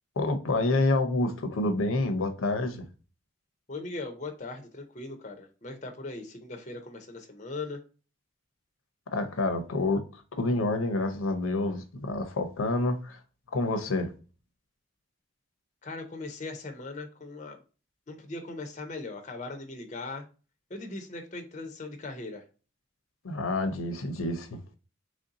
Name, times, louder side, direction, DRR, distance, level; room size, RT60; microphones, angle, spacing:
voice 1, 0.2-2.8 9.1-13.2 13.5-14.1 23.2-24.8, left 2 dB, 85° left, 0.6 m, -28 dB
voice 2, 3.7-7.8 15.8-17.6 18.1-20.2 20.7-22.5, left 3 dB, 35° left, 0.5 m, -39 dB
3.2 x 2.6 x 3.8 m
head